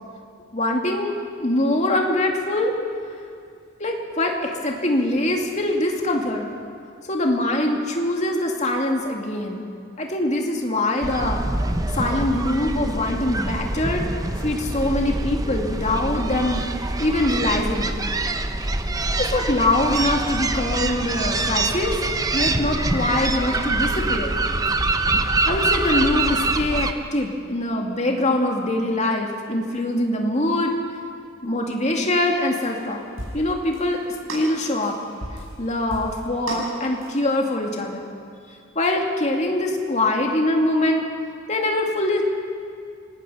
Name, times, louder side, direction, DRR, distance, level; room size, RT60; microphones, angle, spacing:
voice 1, 0.5-2.7 3.8-6.5 7.1-9.6 10.0-11.4 11.9-14.0 14.4-16.7 17.0-18.0 19.2-22.0 22.3-24.4 25.5-30.8 31.4-33.0 33.3-34.0 34.3-35.0 35.6-38.1 38.5-41.0 41.5-42.2, left 1 dB, 35° left, 1 dB, 2.4 m, -23 dB
sound 1, 11.0-26.9, right 2 dB, 20° right, 0.9 m, -25 dB
sound 2, 32.6-32.8 33.2-33.5 33.7-33.9 34.3-35.6 35.9-37.2, right 1 dB, 90° right, 7.1 m, -34 dB
26.5 x 19.0 x 5.7 m, 2.3 s
head